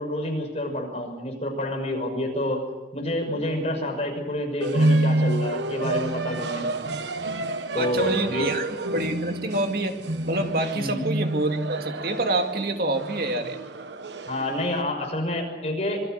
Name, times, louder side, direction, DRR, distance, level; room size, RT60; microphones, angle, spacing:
voice 1, 0.0-2.6 2.9-6.8 7.7-8.5 10.7-11.0 14.3-16.0, left 1 dB, 35° left, 3 dB, 6.0 m, -28 dB
sound 1, 4.6-14.8, right 1 dB, 85° right, 1.2 m, -28 dB
voice 2, 7.8-10.0 10.3-13.6, right 2 dB, 55° right, 5 dB, 2.3 m, -27 dB
26.5 x 22.5 x 6.6 m, 1.1 s
head